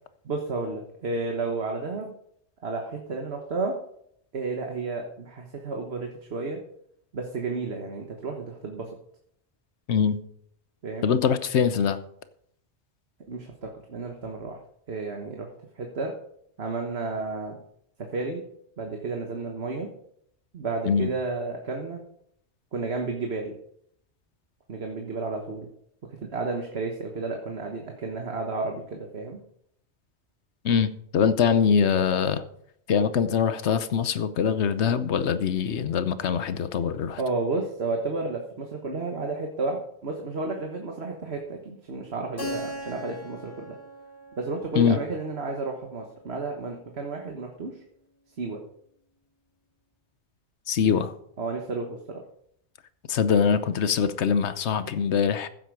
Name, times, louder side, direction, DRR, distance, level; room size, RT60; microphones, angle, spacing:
voice 1, 0.2-2.1 2.6-3.7 4.3-6.6 7.1-8.9 10.8-11.1 13.3-14.6 14.9-15.5 15.8-16.1 16.6-17.6 18.1-18.4 18.8-19.9 20.5-22.0 22.7-23.5 24.7-25.7 26.1-29.4 37.2-43.8 44.4-47.8 48.4-48.6 50.8-51.0 51.4-52.0, right 3 dB, 65° right, 2 dB, 1.6 m, -32 dB
voice 2, 9.9-10.2 11.0-12.0 20.9-21.1 30.6-32.4 32.9-37.2 44.8-45.0 50.7-51.1 53.1-55.5, left 7 dB, 75° left, 13 dB, 1.1 m, -23 dB
Keyboard (musical), 42.4-46.9, equal, 20° left, 2.7 m, -40 dB
15.0 x 7.9 x 4.7 m, 0.70 s
omnidirectional pair, 1.2 m